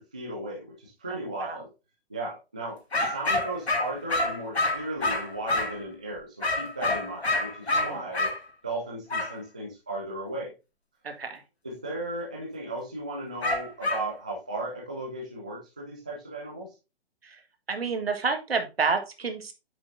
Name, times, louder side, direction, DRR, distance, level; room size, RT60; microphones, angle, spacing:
voice 1, 0.0-1.7 2.1-8.3 8.6-10.5 11.6-16.7, right 1 dB, 10° right, -3 dB, 0.3 m, -36 dB
voice 2, 1.3-1.6 7.7-8.0 11.0-11.4 17.2-17.4 17.7-19.5, right 4 dB, 65° right, 6 dB, 1.7 m, -29 dB
sound 1, 2.9-5.8 6.4-8.4 9.1-9.3 13.4-14.1, left 2 dB, 75° left, 2.1 m, -27 dB
8.9 x 6.1 x 2.6 m, 0.28 s
figure-of-eight pair, 130°, 32 cm